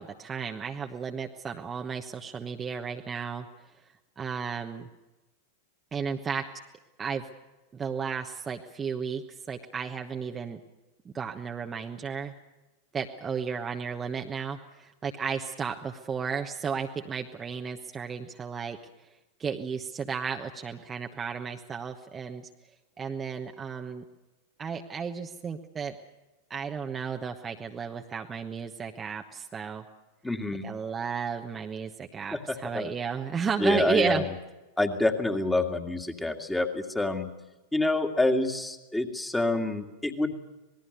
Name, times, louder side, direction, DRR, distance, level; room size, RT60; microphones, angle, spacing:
voice 1, 0.0-3.5 4.2-4.9 5.9-6.4 7.0-7.3 7.7-9.2 9.5-10.6 11.0-12.3 12.9-18.8 19.4-22.4 23.0-24.0 24.6-25.9 26.5-29.9 30.6-34.2, right 6 dB, 20° right, 3 dB, 1.2 m, -33 dB
voice 2, 30.2-30.7 32.3-32.9 33.6-34.3 34.8-37.3 37.7-40.3, left 2 dB, 5° left, 5 dB, 2.2 m, -27 dB
26.5 x 20.0 x 6.7 m, 1.1 s
figure-of-eight pair, 90°, 0 cm